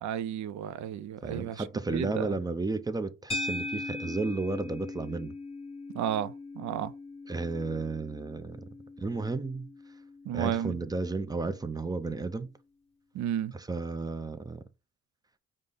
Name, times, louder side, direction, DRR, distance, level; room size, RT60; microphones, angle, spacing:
voice 1, 0.0-1.6 1.9-2.3 5.9-6.9 10.3-10.8 13.1-13.5, right 10 dB, 70° right, 0.4 m, -32 dB
voice 2, 1.2-5.3 7.3-8.6 9.0-9.7 10.3-12.5 13.5-14.6, right 3 dB, 15° right, 0.4 m, -33 dB
sound 1, 3.3-11.7, left 2 dB, 20° left, 0.8 m, -40 dB
5.1 x 2.1 x 3.8 m
cardioid pair, 90°, 30 cm